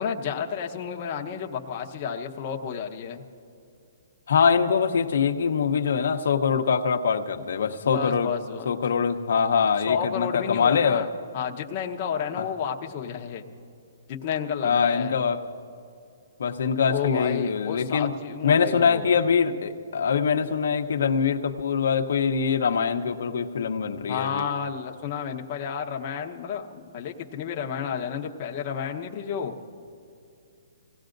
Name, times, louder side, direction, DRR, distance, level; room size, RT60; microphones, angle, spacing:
voice 1, 0.0-3.2 7.8-8.7 9.9-11.1 11.3-13.5 14.1-15.2 16.9-19.1 24.1-29.5, left 7 dB, 30° left, 1 dB, 1.0 m, -31 dB
voice 2, 4.3-8.3 8.6-11.0 12.4-12.5 14.6-15.4 16.4-18.1 18.4-24.5, left 6 dB, 70° left, 5 dB, 0.9 m, -23 dB
26.0 x 17.0 x 2.6 m, 2.5 s
hypercardioid pair, 165°, 0 cm